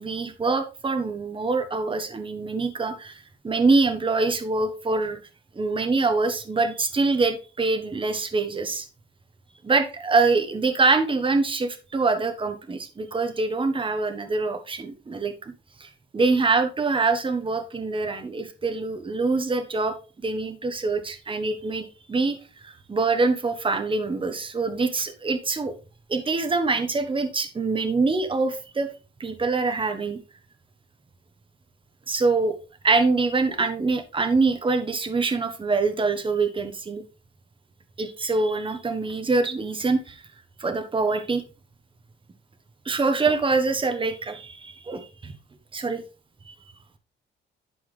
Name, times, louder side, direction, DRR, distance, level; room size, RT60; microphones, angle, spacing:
voice 1, 0.0-5.2 5.5-8.9 9.6-15.5 15.8-25.7 26.1-28.9 29.2-30.2 32.1-32.5 32.8-37.0 38.0-40.2 40.6-41.4 42.8-45.3 45.7-46.0 46.5-46.6, right 3 dB, 25° right, 8 dB, 1.4 m, -24 dB
11.5 x 4.7 x 3.5 m, 0.32 s
cardioid pair, 90°, 20 cm